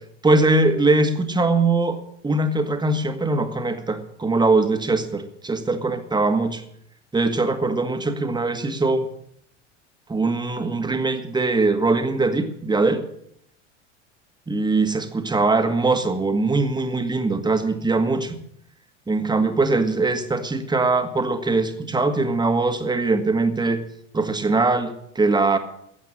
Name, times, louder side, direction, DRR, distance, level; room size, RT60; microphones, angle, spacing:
voice 1, 0.2-6.6 7.1-9.1 10.1-13.0 14.5-18.4 19.1-23.8 24.1-25.6, right 3 dB, 10° right, 7 dB, 2.0 m, -21 dB
14.5 x 8.3 x 9.9 m, 0.72 s
figure-of-eight pair, 80°, 37 cm